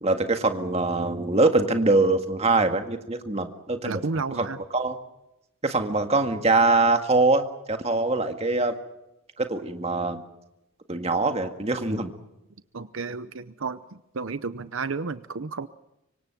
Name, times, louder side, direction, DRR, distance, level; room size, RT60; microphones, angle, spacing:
voice 1, 0.0-4.0 4.4-4.5 4.7-5.0 5.6-8.8 9.4-10.2 10.9-12.1, right 3 dB, 30° right, 6 dB, 1.9 m, -23 dB
voice 2, 3.8-4.6 12.7-13.8 14.1-15.7, right 4 dB, 70° right, 13 dB, 0.7 m, -31 dB
25.5 x 24.5 x 6.0 m, 0.91 s
head